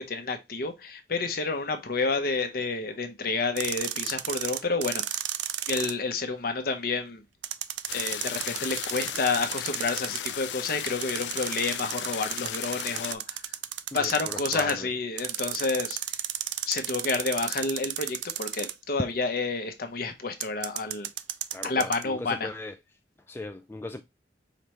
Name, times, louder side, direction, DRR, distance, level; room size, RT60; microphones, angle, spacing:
voice 1, 0.0-5.2 5.7-7.2 7.9-13.4 13.9-16.0 16.7-21.1 21.6-22.5, left 4 dB, 55° left, 0.8 m, -29 dB
sound 1, 3.6-5.9 7.4-10.3 10.9-14.7 15.2-18.9 20.4-22.0, right 12 dB, 85° right, 0.4 m, -33 dB
sound 2, 7.9-13.2, left 10 dB, 80° left, 0.4 m, -36 dB
voice 2, 13.9-14.9 21.5-22.8 23.3-24.0, left 2 dB, 15° left, 0.3 m, -38 dB
5.0 x 3.3 x 2.9 m
head